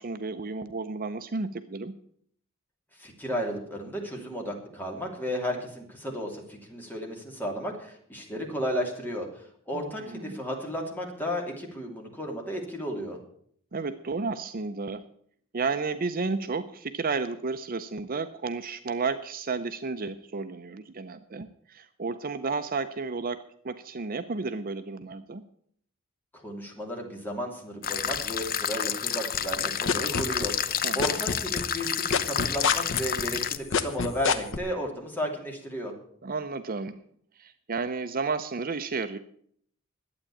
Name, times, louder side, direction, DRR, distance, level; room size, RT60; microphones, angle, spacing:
voice 1, 0.0-2.0 9.7-10.4 13.7-15.0 15.5-25.4 30.8-31.2 36.2-37.0 37.4-39.2, right 4 dB, 45° right, 9 dB, 0.6 m, -32 dB
voice 2, 3.0-13.2 26.3-35.9, equal, 10° left, 0 dB, 2.9 m, -34 dB
sound 1, 27.8-33.6, left 9 dB, 45° left, 0.6 m, -30 dB
sound 2, 29.3-30.7 31.0-34.6, left 5 dB, 65° left, 1.1 m, -26 dB
12.0 x 8.8 x 8.5 m, 0.63 s
head